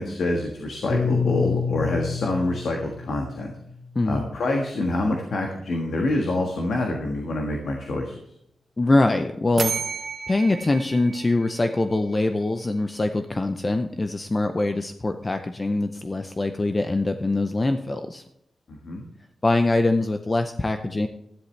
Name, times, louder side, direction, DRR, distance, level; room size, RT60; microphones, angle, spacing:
voice 1, 0.0-3.5 4.0-8.2 18.7-19.1, left 2 dB, 80° left, 1 dB, 1.5 m, -26 dB
Piano, 0.9-5.3, left 5 dB, 50° left, 1.6 m, -29 dB
voice 2, 4.0-4.3 8.8-9.7 10.3-18.2 19.4-21.1, left 2 dB, 30° left, 7 dB, 0.6 m, -23 dB
sound 1, 9.6-12.3, right 5 dB, 55° right, 0.9 m, -33 dB
13.0 x 11.0 x 3.3 m, 0.77 s
cardioid pair, 90°, 0 cm